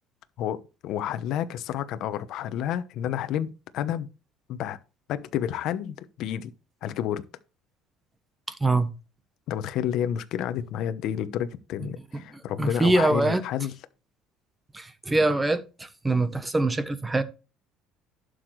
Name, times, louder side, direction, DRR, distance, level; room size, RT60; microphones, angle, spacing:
voice 1, 0.4-4.1 4.5-4.8 5.1-6.5 6.8-7.2 9.5-13.7, left 10 dB, 60° left, 1.0 m, -30 dB
voice 2, 12.6-13.4 14.7-15.6 16.0-17.2, right 2 dB, 10° right, 1.0 m, -23 dB
11.5 x 6.5 x 3.3 m
cardioid pair, 140°, 0 cm